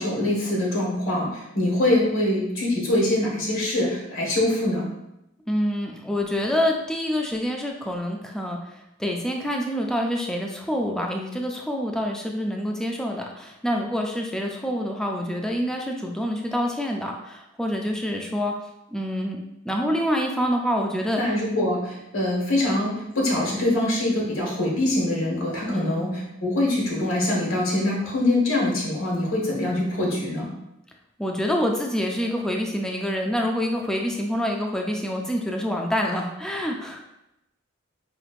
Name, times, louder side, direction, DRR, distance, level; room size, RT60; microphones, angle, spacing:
voice 1, 0.0-4.9 21.2-30.5, left 1 dB, 90° left, -4 dB, 1.4 m, -24 dB
voice 2, 5.5-18.5 18.9-21.2 25.7-26.0 31.2-37.0, equal, 5° left, 1 dB, 0.4 m, -26 dB
5.1 x 3.1 x 2.4 m, 0.88 s
head